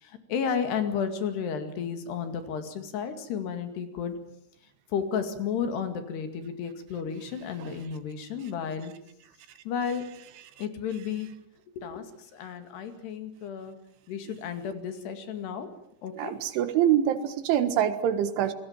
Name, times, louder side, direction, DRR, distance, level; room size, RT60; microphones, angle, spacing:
voice 1, 0.0-4.1 4.9-8.9 9.7-10.1 10.6-11.3 11.8-13.8 14.1-15.7 16.0-16.3, left 7 dB, 65° left, 8 dB, 4.1 m, -32 dB
voice 2, 16.2-18.5, right 10 dB, 90° right, 11 dB, 4.1 m, -25 dB
28.0 x 21.0 x 7.4 m, 0.74 s
omnidirectional pair, 5.3 m